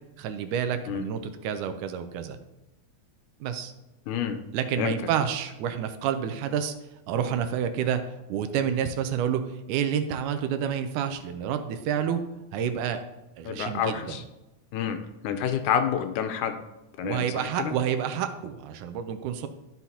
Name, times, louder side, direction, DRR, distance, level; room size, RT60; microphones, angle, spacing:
voice 1, 0.2-2.4 3.4-3.7 4.5-6.7 7.1-8.0 8.3-9.4 9.7-12.2 12.5-13.0 13.4-14.0 17.0-19.5, right 8 dB, 85° right, 8 dB, 2.1 m, -29 dB
voice 2, 4.1-4.4 4.8-4.9 13.5-14.2 14.7-15.0 15.2-16.6 17.0-17.7, left 8 dB, 85° left, 8 dB, 2.1 m, -28 dB
12.0 x 5.8 x 2.8 m, 1.0 s
omnidirectional pair, 3.6 m